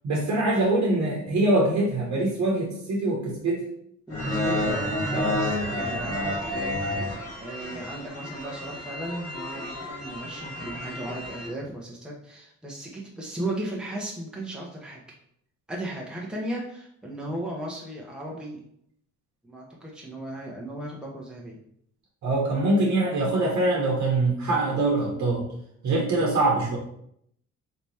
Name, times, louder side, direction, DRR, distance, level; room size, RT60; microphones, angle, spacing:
voice 1, 0.0-3.6 5.2-5.3 22.2-25.5 25.8-26.8, right 2 dB, 65° right, -3 dB, 1.1 m, -23 dB
sound 1, 4.1-11.5, left 1 dB, 50° left, 1.5 m, -30 dB
voice 2, 4.1-15.0 15.7-18.6 19.4-21.6, right 1 dB, 5° right, -3 dB, 0.9 m, -36 dB
3.5 x 2.9 x 4.1 m, 0.70 s
cardioid pair, 90°, 30 cm